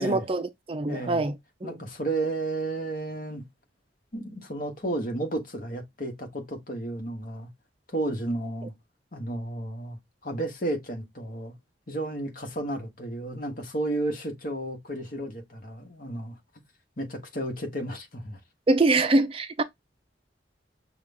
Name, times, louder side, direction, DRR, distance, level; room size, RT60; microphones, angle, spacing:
voice 1, 0.0-1.3 1.6-1.8 18.7-19.6, right 2 dB, 30° right, 0.5 m, -24 dB
voice 2, 0.9-1.2 1.6-3.4 4.1-7.5 7.9-8.7 9.1-11.5 11.9-16.4 17.0-18.4, right 1 dB, 50° left, 1.4 m, -32 dB
6.1 x 2.4 x 3.5 m
head